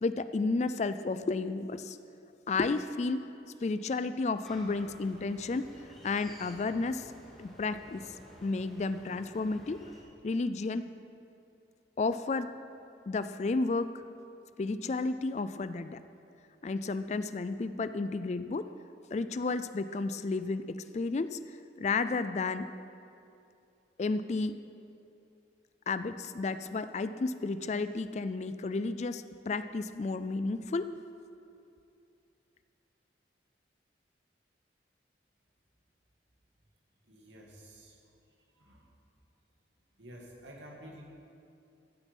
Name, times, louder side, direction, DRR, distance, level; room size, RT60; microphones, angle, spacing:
voice 1, 0.0-2.0 2.5-3.2 3.6-5.7 6.0-7.1 7.4-8.1 8.4-9.8 10.2-10.9 12.0-12.5 13.1-14.0 14.6-16.0 16.6-18.7 19.1-21.4 21.8-22.7 24.0-24.6 25.9-30.9, left 3 dB, 35° left, 12 dB, 0.3 m, -32 dB
sound 1, 4.4-10.0, equal, ahead, 2.9 m, -53 dB
voice 2, 37.0-38.0 38.5-38.9 40.0-41.0, equal, 80° right, -1 dB, 2.3 m, -50 dB
15.0 x 8.1 x 5.4 m, 2.6 s
head